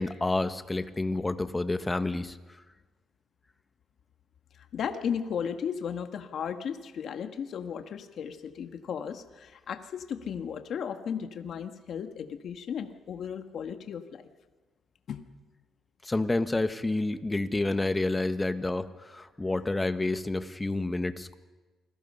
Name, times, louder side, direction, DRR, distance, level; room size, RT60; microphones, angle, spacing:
voice 1, 0.0-2.4 16.0-21.3, left 2 dB, 15° left, 10 dB, 1.4 m, -29 dB
voice 2, 4.6-14.2 15.1-15.2, left 7 dB, 65° left, 6 dB, 1.6 m, -35 dB
28.5 x 21.5 x 5.6 m, 1.3 s
cardioid pair, 90°, 0 cm